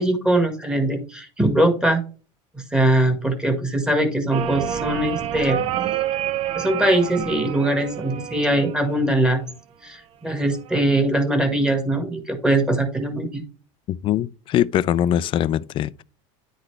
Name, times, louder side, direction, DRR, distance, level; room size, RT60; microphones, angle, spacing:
voice 1, 0.0-2.0 2.7-5.6 6.5-9.4 9.8-13.4, right 1 dB, 5° right, 1.5 m, -21 dB
sound 1, 4.3-9.3 10.5-11.0, right 10 dB, 40° right, 0.6 m, -28 dB
voice 2, 14.0-16.0, left 11 dB, 35° left, 0.4 m, -22 dB
10.0 x 4.0 x 3.3 m
supercardioid pair, 135°, 16 cm